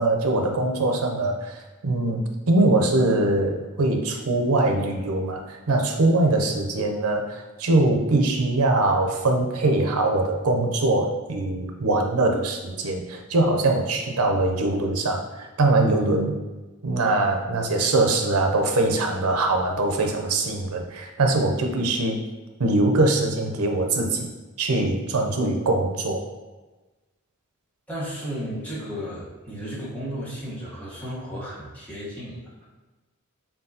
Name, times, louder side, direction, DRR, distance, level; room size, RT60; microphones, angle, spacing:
voice 1, 0.0-16.4 16.8-22.2 22.6-24.3 24.6-26.3, right 2 dB, 85° right, 3 dB, 0.6 m, -22 dB
voice 2, 27.9-32.7, equal, 5° left, -8 dB, 1.1 m, -34 dB
4.5 x 3.5 x 2.8 m, 1.2 s
head